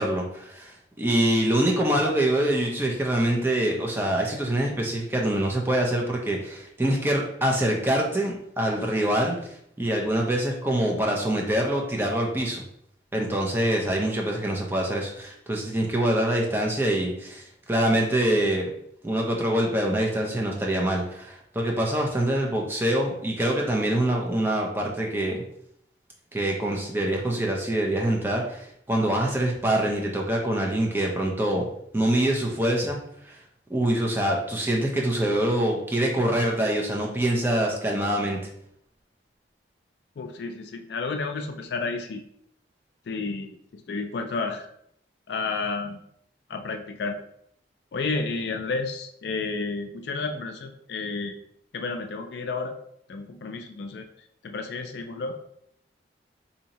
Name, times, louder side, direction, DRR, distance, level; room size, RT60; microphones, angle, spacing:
voice 1, 0.0-12.6 13.1-18.6 19.0-25.4 26.3-31.7 31.9-33.0 33.2-33.4 33.7-38.4, right 1 dB, 10° right, 0 dB, 0.5 m, -25 dB
voice 2, 40.2-42.2 43.1-44.7 45.3-46.0 46.5-47.2 47.9-51.4 51.7-52.7 53.1-54.1 54.4-55.4, left 3 dB, 65° left, 5 dB, 0.4 m, -31 dB
2.8 x 2.7 x 4.0 m, 0.71 s
head